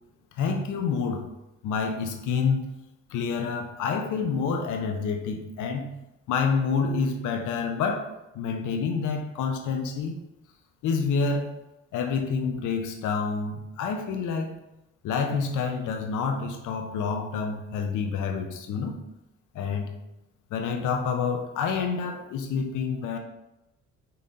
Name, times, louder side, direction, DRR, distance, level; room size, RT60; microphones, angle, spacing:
voice 1, 0.4-1.3 1.6-2.6 3.1-5.9 6.3-10.2 10.8-11.5 11.9-14.6 15.0-19.0 19.5-19.9 20.5-23.2, left 5 dB, 90° left, 4 dB, 0.9 m, -28 dB
5.7 x 3.8 x 4.3 m, 0.90 s
cardioid pair, 90°, 30 cm